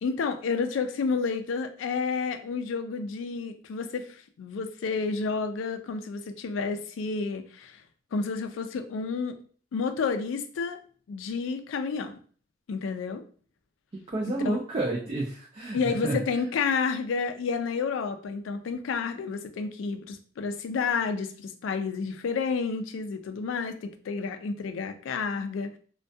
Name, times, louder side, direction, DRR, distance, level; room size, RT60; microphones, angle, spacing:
voice 1, 0.0-7.8 8.1-9.4 9.7-10.8 11.1-12.2 12.7-13.2 14.5-14.6 15.7-25.8, left 5 dB, 85° left, 8 dB, 0.3 m, -30 dB
voice 2, 13.9-16.2, right 2 dB, 30° right, -2 dB, 0.4 m, -30 dB
2.2 x 2.2 x 2.6 m, 0.43 s
head